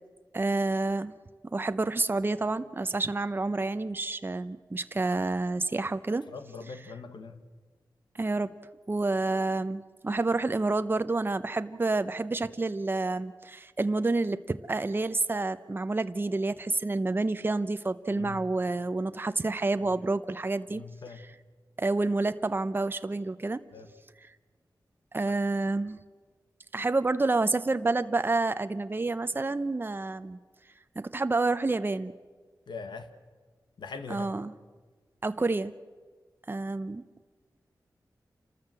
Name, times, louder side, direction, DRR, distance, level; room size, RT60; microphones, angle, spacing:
voice 1, 0.3-1.1 1.4-6.3 8.2-8.5 8.9-20.8 21.8-23.6 25.1-26.0 26.7-30.4 31.0-32.1 34.1-34.5 35.2-35.7 36.5-37.0, right 3 dB, 30° right, 11 dB, 0.7 m, -29 dB
voice 2, 6.3-7.4 18.1-18.4 19.8-19.9 20.7-21.3 23.7-23.9 25.2-25.3 32.7-33.1 33.8-34.3, left 4 dB, 85° left, 9 dB, 1.3 m, -42 dB
28.5 x 13.5 x 7.7 m, 1.5 s
wide cardioid pair, 70°, 8 cm